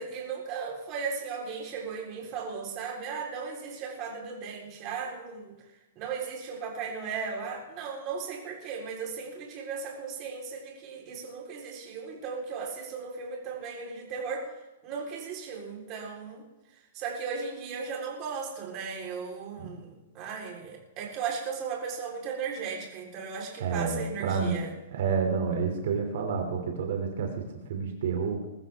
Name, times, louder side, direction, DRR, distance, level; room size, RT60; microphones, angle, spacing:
voice 1, 0.0-5.6 6.0-14.5 14.8-16.4 16.7-24.7, right 5 dB, 30° right, 0 dB, 4.0 m, -36 dB
voice 2, 23.6-24.6 24.9-27.4 27.7-28.5, right 5 dB, 60° right, 3 dB, 2.8 m, -29 dB
21.5 x 13.5 x 3.6 m, 1.0 s
hypercardioid pair, 160°, 0 cm